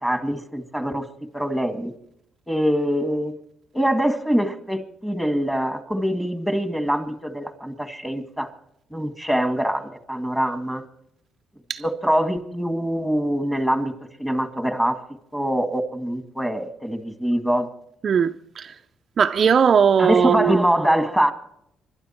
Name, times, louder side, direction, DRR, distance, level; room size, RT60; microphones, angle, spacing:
voice 1, 0.0-1.9 2.5-3.4 3.7-8.5 8.9-10.8 11.8-13.9 14.2-15.0 15.3-17.7 20.0-21.3, equal, 5° left, 1.9 m, -24 dB
voice 2, 18.0-18.7 19.2-20.6, right 7 dB, 45° right, 0.5 m, -19 dB
27.0 x 12.0 x 4.4 m
cardioid pair, 120°, 0 cm